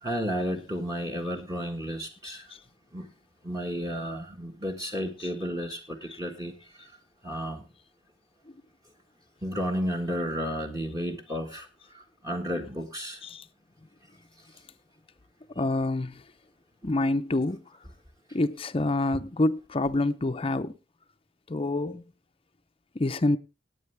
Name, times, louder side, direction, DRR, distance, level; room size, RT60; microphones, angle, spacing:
voice 1, 0.0-2.5 2.9-3.1 3.4-6.5 6.8-6.9 7.2-7.6 9.4-11.7 11.9-13.2, equal, 20° right, 1.5 m, -32 dB
voice 2, 15.6-16.2 16.8-17.6 18.3-20.7 21.5-22.0 22.9-23.4, left 2 dB, 30° left, 0.6 m, -27 dB
18.0 x 8.8 x 3.3 m
head